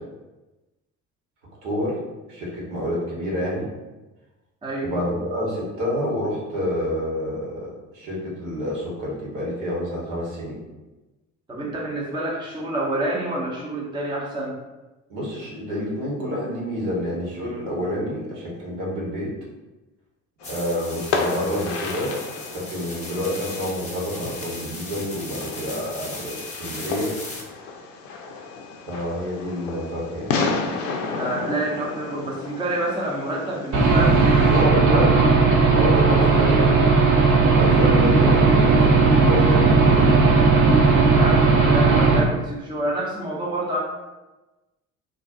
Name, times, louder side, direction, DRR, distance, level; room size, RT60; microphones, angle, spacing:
voice 1, 1.6-2.0 2.3-3.7 4.8-7.7 7.9-10.6 15.1-19.3 20.5-22.2 22.5-27.1 28.9-30.3 34.5-35.1 35.7-36.8 37.5-40.1, equal, 65° right, -4 dB, 1.2 m, -28 dB
voice 2, 4.6-4.9 11.5-14.6 31.1-35.1 40.3-43.8, right 1 dB, 10° right, -4 dB, 0.7 m, -28 dB
Fireworks, 20.4-34.6, left 4 dB, 75° left, 0.5 m, -32 dB
sound 1, 20.4-27.4, left 2 dB, 20° left, 0.8 m, -37 dB
Aircraft / Engine, 33.7-42.2, right 4 dB, 50° right, 0.8 m, -16 dB
2.5 x 2.3 x 3.6 m, 1.1 s
figure-of-eight pair, 55°, 39 cm